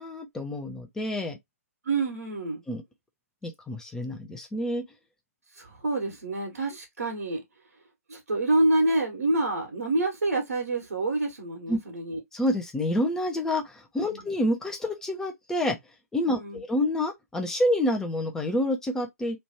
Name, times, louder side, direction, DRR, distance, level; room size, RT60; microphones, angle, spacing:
voice 1, 0.0-1.4 2.7-2.8 3.4-4.8 11.7-11.8 12.3-15.8 16.1-19.4, left 1 dB, 5° left, 0.7 m, -28 dB
voice 2, 1.8-2.6 5.5-7.4 8.1-12.2 14.1-14.2 16.3-16.6, right 2 dB, 65° right, 1.5 m, -27 dB
3.2 x 2.6 x 4.1 m
figure-of-eight pair, 125°, 8 cm